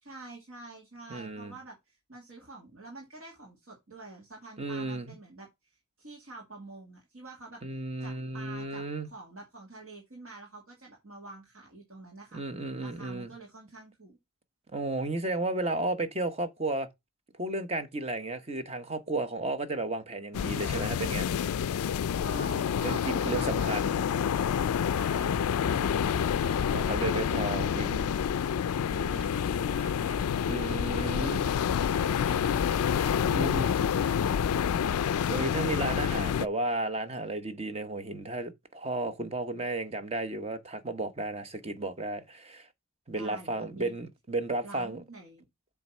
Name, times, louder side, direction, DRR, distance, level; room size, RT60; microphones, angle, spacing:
voice 1, 0.0-5.5 6.0-7.6 8.0-12.4 12.8-14.2 22.1-24.1 24.8-28.2 28.4-30.6 30.9-35.4 43.1-43.9 44.6-45.4, right 2 dB, 65° right, 2.2 m, -47 dB
voice 2, 1.1-1.5 4.6-5.1 7.6-9.1 12.3-13.3 14.7-16.9 17.4-21.3 22.8-24.0 25.6-26.1 26.7-27.9 30.5-31.5 33.3-33.7 35.3-42.7 43.1-45.0, right 2 dB, 30° right, 0.9 m, -33 dB
sound 1, 20.3-36.5, left 8 dB, 85° left, 0.3 m, -28 dB
7.7 x 3.5 x 5.4 m
head